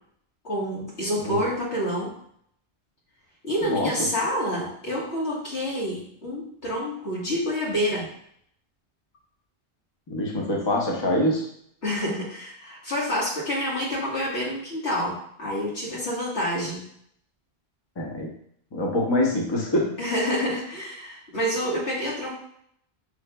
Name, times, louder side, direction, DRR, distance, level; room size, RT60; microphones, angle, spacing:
voice 1, 0.4-2.1 3.4-8.1 11.8-16.8 20.0-22.3, equal, 80° left, -5 dB, 1.7 m, -28 dB
voice 2, 3.6-4.1 10.1-11.5 18.0-18.3 18.7-20.0, left 1 dB, 30° left, -1 dB, 0.7 m, -25 dB
6.2 x 3.1 x 2.2 m, 0.66 s
omnidirectional pair, 1.1 m